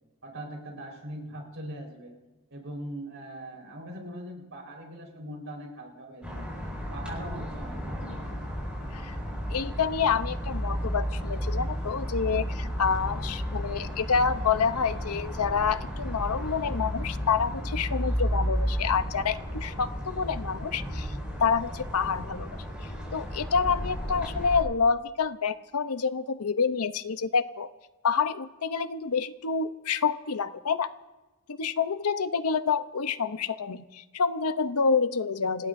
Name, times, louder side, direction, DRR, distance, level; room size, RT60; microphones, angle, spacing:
voice 1, 0.2-2.2 2.5-6.5 6.9-8.4, right 1 dB, 60° right, 0 dB, 4.4 m, -41 dB
sound 1, 6.2-24.6, equal, 5° right, 5.8 m, -33 dB
voice 2, 9.5-27.7 28.0-30.9 31.5-35.7, left 5 dB, 85° left, 12 dB, 0.7 m, -28 dB
26.5 x 19.0 x 2.6 m, 1.2 s
head